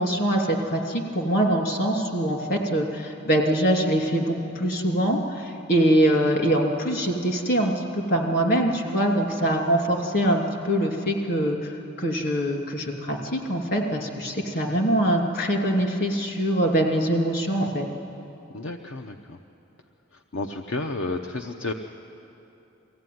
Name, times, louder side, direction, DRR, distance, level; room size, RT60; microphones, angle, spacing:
voice 1, 0.0-17.8, right 1 dB, 50° left, 2 dB, 2.7 m, -23 dB
voice 2, 18.5-19.4 20.3-21.7, left 2 dB, 70° left, 4 dB, 0.8 m, -31 dB
22.5 x 16.0 x 9.4 m, 2.9 s
head